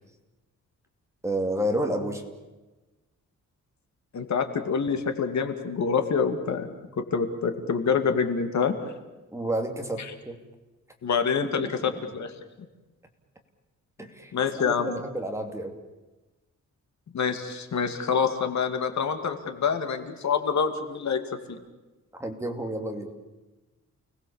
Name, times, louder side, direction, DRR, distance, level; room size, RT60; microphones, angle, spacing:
voice 1, 1.2-2.2 9.3-10.4 11.4-11.7 14.0-14.3 14.6-15.8 22.2-23.1, right 1 dB, 10° right, 3 dB, 2.7 m, -30 dB
voice 2, 4.1-6.7 7.0-8.7 10.0-10.1 11.0-12.3 14.3-15.0 17.1-21.2 21.5-21.6, left 6 dB, 65° left, 7 dB, 2.5 m, -26 dB
29.5 x 20.0 x 7.3 m, 1.1 s
wide cardioid pair, 150°, 30 cm